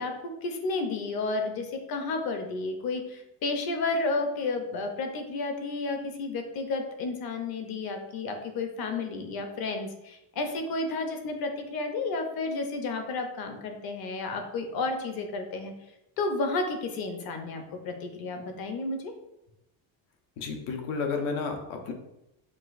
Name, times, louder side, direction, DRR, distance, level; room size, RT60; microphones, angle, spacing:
voice 1, 0.0-15.7 16.2-19.1, left 3 dB, 50° left, 5 dB, 0.6 m, -32 dB
voice 2, 20.4-21.9, left 4 dB, 90° left, 4 dB, 0.9 m, -31 dB
6.1 x 2.4 x 2.5 m, 0.88 s
cardioid pair, 155°, 49 cm